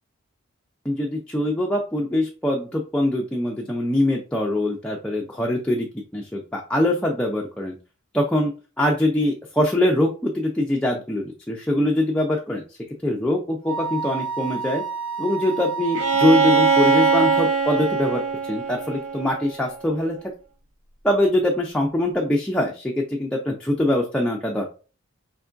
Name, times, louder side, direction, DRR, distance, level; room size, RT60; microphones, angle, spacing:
voice 1, 0.8-5.9 6.1-7.8 8.1-14.8 15.2-20.2 21.0-24.7, left 1 dB, 5° left, -1 dB, 0.4 m, -23 dB
Wind instrument woodwind instrument, 13.6-17.5, right 5 dB, 65° right, 1.7 m, -29 dB
Bowed string instrument, 15.9-19.7, right 5 dB, 80° right, 1.0 m, -21 dB
4.4 x 3.4 x 2.5 m, 0.35 s
head